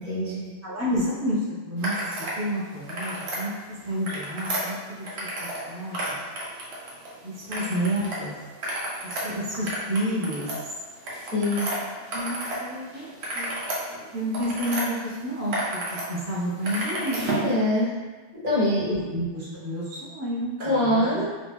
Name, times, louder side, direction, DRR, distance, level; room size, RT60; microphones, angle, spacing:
voice 1, 0.0-0.5 11.3-11.7 17.3-17.9 18.4-19.0 20.6-21.3, left 1 dB, 50° right, -8 dB, 1.2 m, -24 dB
voice 2, 0.6-3.5 3.8-6.2 7.2-8.3 9.0-10.5 12.1-13.5 14.1-17.2 18.9-21.3, equal, 20° right, -8 dB, 0.6 m, -30 dB
sound 1, 1.8-2.4 2.7-3.4 3.9-5.6 5.9-7.1 7.5-8.2 8.5-12.6 12.9-14.8 15.3-16.0 16.3-17.5, right 1 dB, 75° right, 1.1 m, -31 dB
3.1 x 2.7 x 3.4 m, 1.3 s
omnidirectional pair, 1.1 m